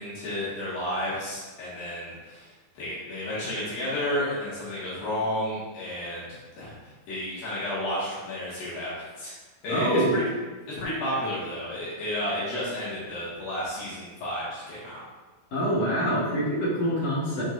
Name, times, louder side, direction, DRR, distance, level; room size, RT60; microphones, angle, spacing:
voice 1, 0.0-6.3 6.6-6.7 7.1-9.3 9.6-10.2 10.7-15.0, left 1 dB, 75° left, -9 dB, 3.4 m, -32 dB
voice 2, 9.7-10.1 15.5-17.4, equal, 55° left, -8 dB, 2.3 m, -25 dB
11.0 x 4.5 x 2.6 m, 1.3 s
omnidirectional pair, 4.2 m